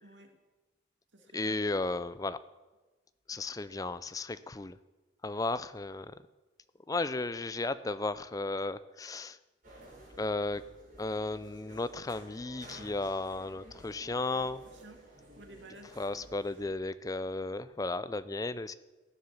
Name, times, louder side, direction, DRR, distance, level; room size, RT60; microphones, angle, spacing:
voice 1, 0.0-0.3 1.1-1.6 14.3-15.0 15.4-16.3, right 1 dB, 70° right, 5 dB, 2.1 m, -54 dB
voice 2, 1.3-2.4 3.3-4.8 5.2-6.1 6.9-9.4 10.2-10.6 11.0-14.6 16.0-18.7, left 2 dB, 20° left, 15 dB, 0.4 m, -34 dB
sound 1, 9.6-16.7, right 1 dB, 45° right, 6.6 m, -53 dB
15.5 x 9.6 x 7.2 m, 1.2 s
head